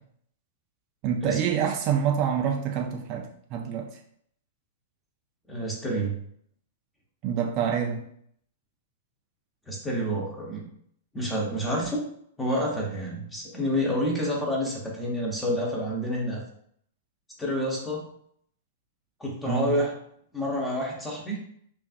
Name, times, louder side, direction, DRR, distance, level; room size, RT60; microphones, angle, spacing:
voice 1, 1.0-3.9 7.2-8.0 19.5-19.8, right 8 dB, 35° right, 2 dB, 0.4 m, -27 dB
voice 2, 5.5-6.1 9.7-10.7 11.1-12.0 12.4-16.4 17.4-18.0 19.2-19.9 20.3-21.4, equal, 5° left, -3 dB, 0.9 m, -28 dB
5.1 x 2.5 x 2.5 m, 0.67 s
hypercardioid pair, 145°, 0 cm